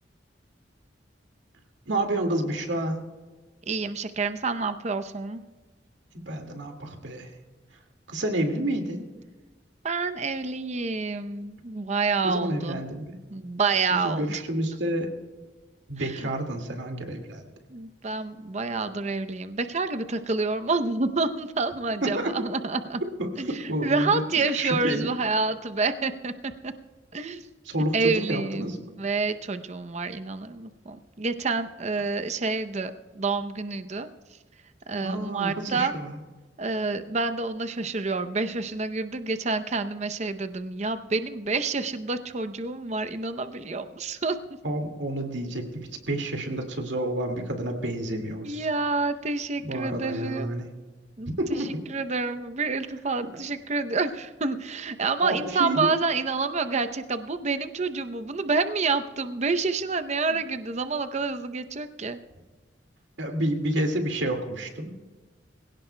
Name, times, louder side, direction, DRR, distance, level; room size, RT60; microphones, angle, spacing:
voice 1, 1.9-3.0 6.3-7.4 8.1-9.1 12.2-13.2 13.9-15.1 15.9-17.4 22.0-22.3 23.2-24.2 24.5-25.1 27.7-28.8 35.0-36.2 44.6-48.7 49.6-50.7 51.4-51.8 55.2-55.9 63.2-64.9, right 1 dB, 80° right, 4 dB, 2.0 m, -29 dB
voice 2, 3.7-5.4 9.8-12.8 13.3-14.4 16.0-16.3 17.7-23.0 23.4-26.3 26.6-26.7 27.1-27.4 27.9-28.7 29.0-34.1 34.9-35.9 36.6-44.4 48.4-50.6 51.2-62.2, right 4 dB, 40° right, 10 dB, 0.7 m, -28 dB
22.5 x 16.5 x 2.2 m, 1.3 s
head